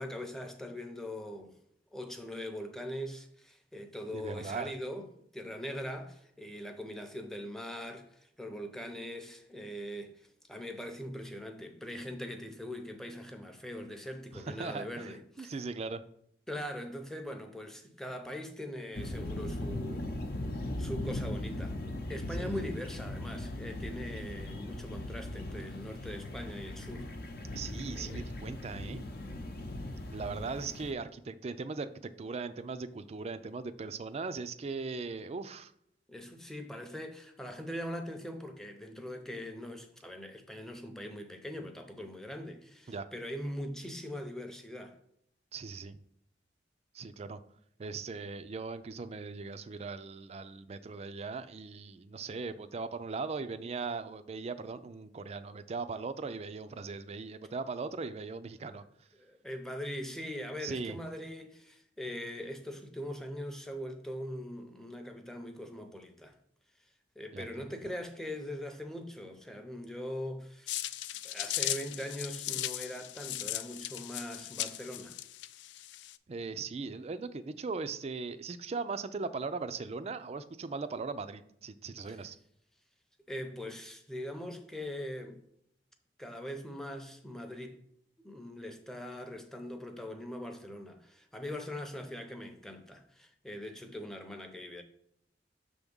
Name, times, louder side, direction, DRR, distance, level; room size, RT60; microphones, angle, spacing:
voice 1, 0.0-1.6 1.9-5.1 5.3-15.6 16.5-20.1 20.8-21.8 22.1-27.1 27.9-28.3 36.1-45.0 58.6-58.8 59.2-66.4 67.2-70.9 71.2-75.2 82.1-82.2 83.3-85.4 86.2-87.8 88.2-94.8, equal, 5° left, 0.6 m, -41 dB
voice 2, 4.1-4.7 14.3-16.0 22.4-22.6 27.5-29.0 30.1-35.7 42.9-43.1 45.5-46.0 46.9-47.4 47.8-58.8 60.6-61.0 67.3-67.6 76.3-82.4, right 4 dB, 35° right, 0.4 m, -39 dB
sound 1, 18.9-30.9, left 1 dB, 60° left, 0.7 m, -39 dB
sound 2, 70.7-76.2, left 14 dB, 80° left, 0.3 m, -37 dB
6.3 x 3.5 x 5.3 m
head